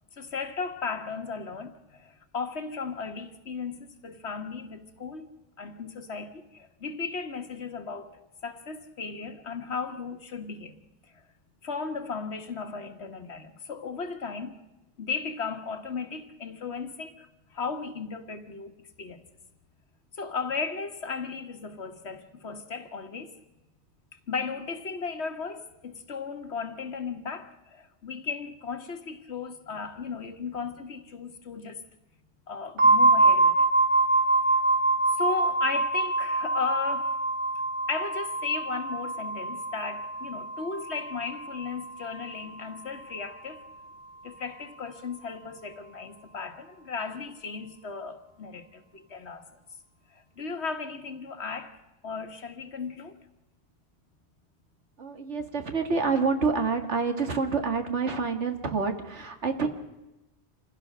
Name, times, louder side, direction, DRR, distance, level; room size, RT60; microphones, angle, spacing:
voice 1, 0.1-5.3 5.6-8.1 8.4-10.8 11.1-11.2 11.6-14.6 15.0-19.2 20.1-23.4 24.1-31.8 32.5-33.7 34.5-34.6 35.2-37.2 37.9-43.6 44.2-49.5 50.1-51.8 52.0-53.2, left 5 dB, 70° left, 1.7 m, -36 dB
sound 1, 32.8-42.4, right 2 dB, 50° right, 1.0 m, -25 dB
voice 2, 55.0-59.7, right 4 dB, 90° right, 2.2 m, -27 dB
26.5 x 16.0 x 6.4 m
omnidirectional pair, 1.1 m